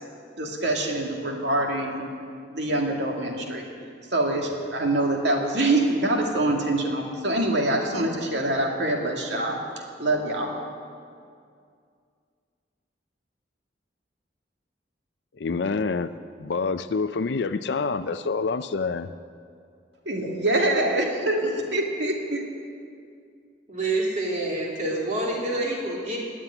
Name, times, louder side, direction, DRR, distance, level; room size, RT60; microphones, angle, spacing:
voice 1, 0.4-2.0 2.5-3.7 4.1-9.6 10.0-10.6 20.1-22.4, right 1 dB, 70° right, 1 dB, 2.4 m, -25 dB
voice 2, 15.4-16.1 16.4-19.1, left 4 dB, 65° left, 11 dB, 0.5 m, -27 dB
voice 3, 23.7-26.2, right 2 dB, 40° right, -3 dB, 3.5 m, -27 dB
19.0 x 7.5 x 9.9 m, 2.3 s
head